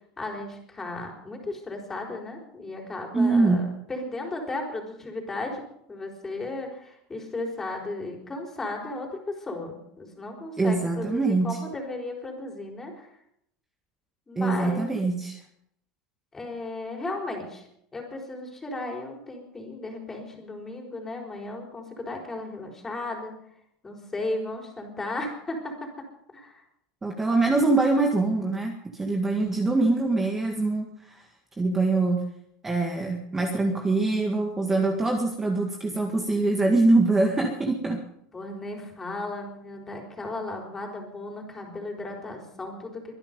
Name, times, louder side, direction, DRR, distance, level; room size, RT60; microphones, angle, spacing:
voice 1, 0.2-5.6 5.9-13.1 14.3-14.9 16.3-17.7 17.9-23.3 23.8-25.9 26.3-26.6 38.3-43.2, left 2 dB, 15° left, 2 dB, 4.4 m, -35 dB
voice 2, 3.1-3.6 10.6-11.6 14.4-15.4 27.0-30.9 31.2-31.3 31.6-32.2 32.6-38.0, right 3 dB, 15° right, 2 dB, 1.9 m, -23 dB
23.5 x 10.5 x 5.4 m, 0.72 s
supercardioid pair, 140°, 3 cm